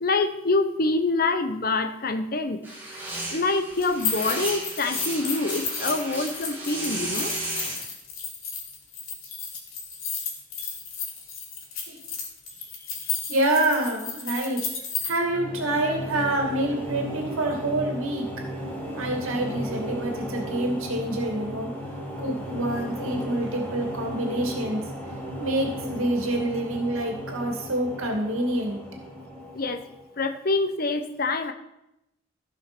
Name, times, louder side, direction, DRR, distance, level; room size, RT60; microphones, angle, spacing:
voice 1, 0.0-2.6 3.3-7.3 13.1-13.2 29.5-29.8 30.2-31.5, left 3 dB, 45° left, 7 dB, 0.9 m, -26 dB
sound 1, 2.6-7.8, right 2 dB, 10° right, 2.9 m, -34 dB
sound 2, 3.8-15.1, left 6 dB, 75° left, 2.8 m, -33 dB
voice 2, 13.3-14.7 15.0-18.3 18.9-21.7 22.2-24.9 25.4-28.8, right 1 dB, 75° right, 2 dB, 2.3 m, -27 dB
sound 3, 15.0-30.3, equal, 10° left, 2.0 m, -36 dB
15.0 x 5.8 x 6.0 m, 0.86 s
head